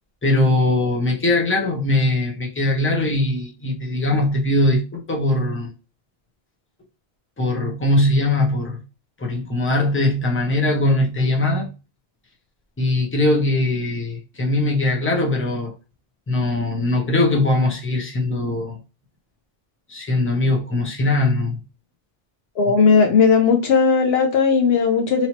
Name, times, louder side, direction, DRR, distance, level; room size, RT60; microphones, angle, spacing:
voice 1, 0.2-5.7 7.4-8.8 9.2-11.7 12.8-15.7 16.3-18.8 19.9-21.6, left 2 dB, 15° left, 0.8 m, -20 dB
voice 2, 22.6-25.3, left 5 dB, 75° left, 0.9 m, -16 dB
3.1 x 2.8 x 2.9 m
omnidirectional pair, 1.1 m